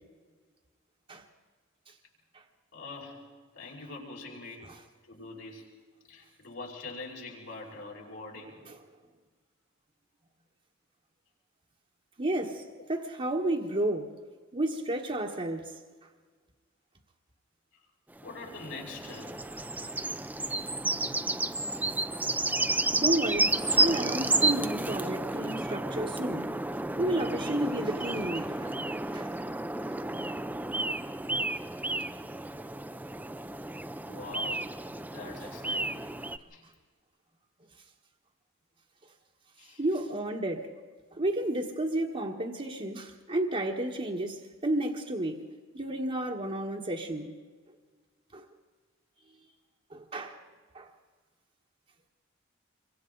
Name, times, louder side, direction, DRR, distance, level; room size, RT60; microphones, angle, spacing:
voice 1, 2.7-3.3 3.5-4.7 5.0-5.7 6.1-8.6 12.6-12.9 17.7-17.8 18.2-19.4 32.0-32.1 33.9-36.1 36.5-36.7 39.6-40.0, left 3 dB, 75° left, 5.6 m, -44 dB
voice 2, 12.2-12.6 12.9-14.1 14.5-15.6 22.9-26.6 27.0-28.7 29.1-29.3 39.8-40.7 41.2-45.4 45.7-47.3 48.3-48.4 49.9-50.4 50.7-50.9, right 1 dB, 35° right, 1.4 m, -31 dB
sound 1, 18.2-36.4, right 2 dB, 10° right, 0.6 m, -31 dB
27.0 x 24.5 x 3.9 m
head